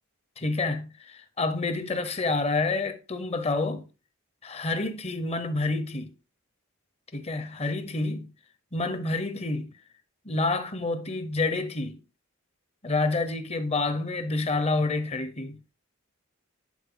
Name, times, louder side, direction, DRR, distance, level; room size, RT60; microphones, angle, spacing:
voice 1, 0.4-3.9 4.4-6.1 7.1-8.3 8.7-9.7 10.2-12.0 12.8-15.7, left 3 dB, 30° left, 0.8 m, -28 dB
10.5 x 4.3 x 3.8 m
head